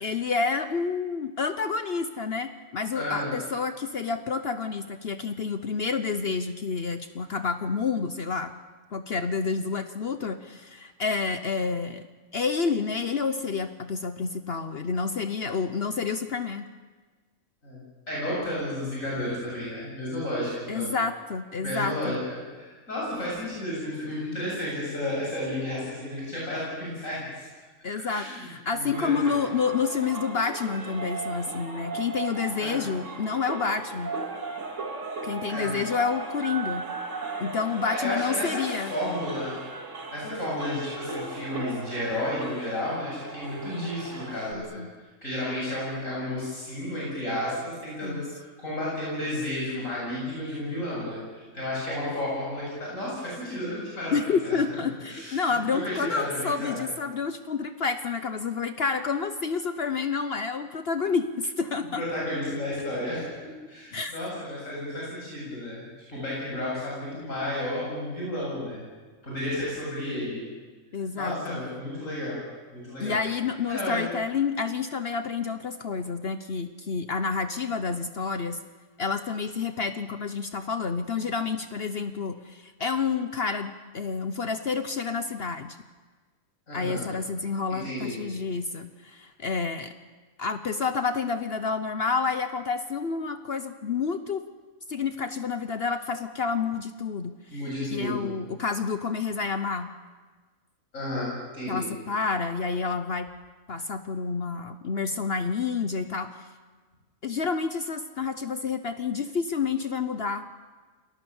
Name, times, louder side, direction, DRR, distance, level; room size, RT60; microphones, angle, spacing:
voice 1, 0.0-8.5 8.9-12.1 12.3-16.7 20.7-22.2 27.8-34.2 35.2-36.9 37.4-38.9 44.5-44.9 48.0-48.3 54.1-62.0 63.9-64.1 70.9-71.6 73.0-78.6 79.0-85.8 86.7-89.9 90.4-94.4 94.9-97.6 97.9-99.9 101.7-103.3 103.7-106.5 107.2-110.4, left 5 dB, 50° left, 9 dB, 1.1 m, -29 dB
voice 2, 2.9-3.4 17.6-17.8 18.1-20.9 21.6-22.2 22.6-27.5 28.0-28.5 28.7-29.3 32.6-32.8 35.5-35.7 37.9-39.6 40.1-44.8 45.2-54.1 54.4-54.6 55.1-56.8 62.0-65.8 66.1-68.8 69.2-70.5 71.1-72.4 72.7-73.2 73.7-74.0 86.7-87.1 87.7-88.2 97.5-98.3 100.9-101.8, left 1 dB, 85° left, -6 dB, 8.3 m, -32 dB
sound 1, 28.9-44.5, right 4 dB, 70° right, 2.5 m, -37 dB
29.0 x 19.5 x 7.1 m, 1.4 s
omnidirectional pair, 1.4 m